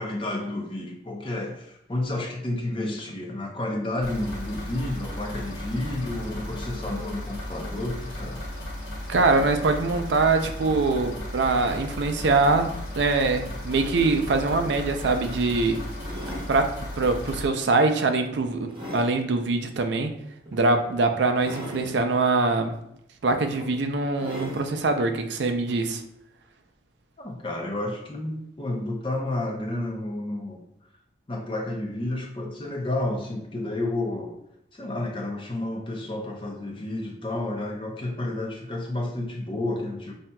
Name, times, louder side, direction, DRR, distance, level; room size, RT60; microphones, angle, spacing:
voice 1, 0.0-8.4 27.2-30.6 31.3-34.4 34.7-40.1, left 1 dB, 25° left, 1 dB, 0.5 m, -31 dB
sound 1, 4.0-17.5, left 1 dB, 85° left, 1.4 m, -35 dB
voice 2, 9.1-15.8 16.5-20.1 20.5-22.8 23.2-26.0, right 3 dB, 70° right, 6 dB, 0.4 m, -23 dB
sound 2, 14.7-14.9 15.9-16.5 17.2-17.4 18.0-19.2 20.5-20.6 21.4-21.9 22.8-22.9 23.3-23.7 24.1-24.7 25.5-25.6, equal, 25° right, 0.9 m, -38 dB
5.7 x 2.7 x 2.2 m, 0.78 s
head